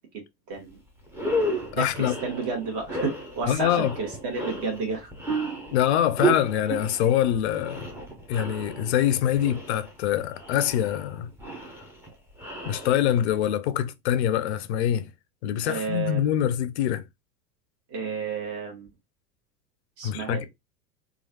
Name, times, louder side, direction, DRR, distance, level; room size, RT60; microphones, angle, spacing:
voice 1, 0.5-0.8 1.7-5.1 15.6-16.2 17.9-18.9 20.0-20.4, right 4 dB, 40° right, 1.3 m, -31 dB
sound 1, 0.6-0.7 1.1-13.4, right 2 dB, 5° right, 0.6 m, -33 dB
voice 2, 1.7-2.1 3.5-3.9 5.7-7.9 8.3-11.3 12.6-15.1 15.4-17.1 20.0-20.4, left 11 dB, 45° left, 0.4 m, -24 dB
3.0 x 2.4 x 2.7 m
figure-of-eight pair, 90°, 49 cm